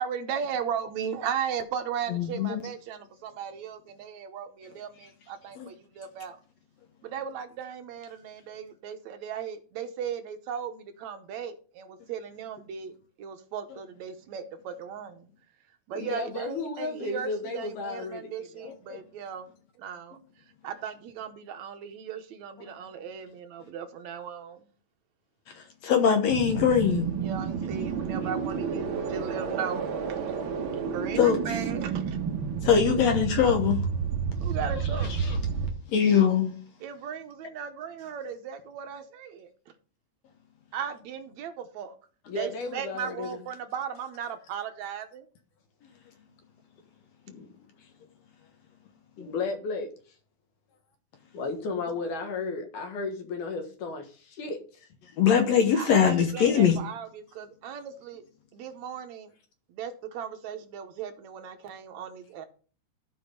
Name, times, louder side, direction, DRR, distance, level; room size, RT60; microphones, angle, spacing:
voice 1, 0.0-6.4 7.0-12.9 13.2-15.3 15.9-19.5 19.8-20.2 20.6-24.6 27.2-29.9 30.9-32.2 34.4-35.2 36.8-39.5 40.7-42.0 42.4-45.3 55.7-58.2 58.5-59.3 59.7-62.5, right 7 dB, 75° right, 2.1 m, -37 dB
voice 2, 2.1-2.6 5.6-5.7 18.6-19.0 25.8-27.1 31.2-31.4 32.6-33.8 35.2-35.4 35.9-36.5 49.2-49.3 55.2-56.8, left 7 dB, 70° left, 2.0 m, -22 dB
voice 3, 15.9-18.7 42.3-43.4 47.3-47.5 47.8-47.9 49.2-49.9 51.3-54.9, left 3 dB, 85° left, 3.0 m, -34 dB
sound 1, 26.3-35.7, right 6 dB, 55° right, 1.5 m, -30 dB
11.5 x 5.2 x 5.2 m
omnidirectional pair, 3.5 m